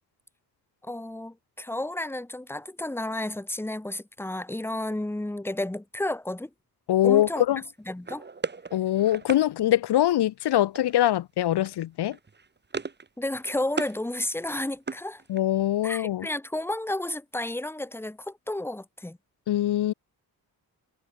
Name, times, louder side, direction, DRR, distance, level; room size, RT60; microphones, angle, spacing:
voice 1, 0.8-6.5 7.0-7.4 7.9-8.2 13.2-15.2 15.8-19.2, left 1 dB, 5° left, 2.4 m, -32 dB
voice 2, 6.9-7.6 8.7-12.2 15.3-16.3 19.5-19.9, left 13 dB, 85° left, 1.6 m, -23 dB
sound 1, 8.0-9.4 10.7-11.2 11.4-11.7 12.0-13.1 13.3-14.0 14.4-15.6, right 4 dB, 25° right, 5.8 m, -37 dB
wide cardioid pair, 150°, 39 cm